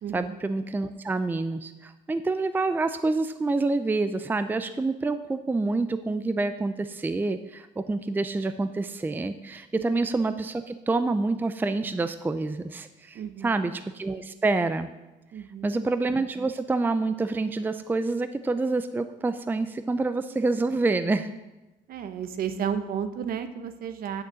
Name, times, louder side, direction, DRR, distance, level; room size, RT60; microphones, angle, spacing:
voice 1, 0.1-14.9 15.6-21.3, right 3 dB, 10° right, 11 dB, 0.5 m, -27 dB
voice 2, 13.1-13.6 15.3-15.7 21.9-24.2, right 8 dB, 60° right, 10 dB, 1.0 m, -32 dB
8.5 x 6.6 x 7.5 m, 1.0 s
cardioid pair, 110°, 17 cm